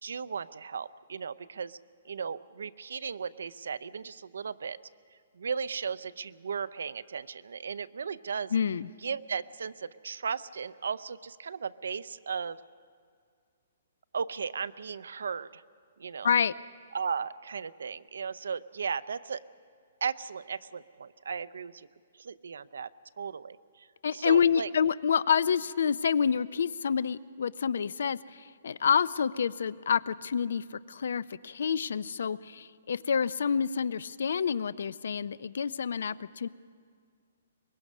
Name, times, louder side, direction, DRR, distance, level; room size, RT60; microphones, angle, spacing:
voice 1, 0.0-1.8 2.0-4.8 5.4-8.5 9.0-12.6 14.1-15.6 16.0-16.3 16.9-19.4 20.0-21.9 22.2-22.9 23.2-23.9 24.1-24.7, right 6 dB, 85° right, 16 dB, 0.5 m, -36 dB
voice 2, 8.5-8.9 16.2-16.5 24.0-36.5, left 7 dB, 70° left, 19 dB, 0.4 m, -28 dB
23.5 x 20.5 x 5.4 m, 2.1 s
hypercardioid pair, 170°, 0 cm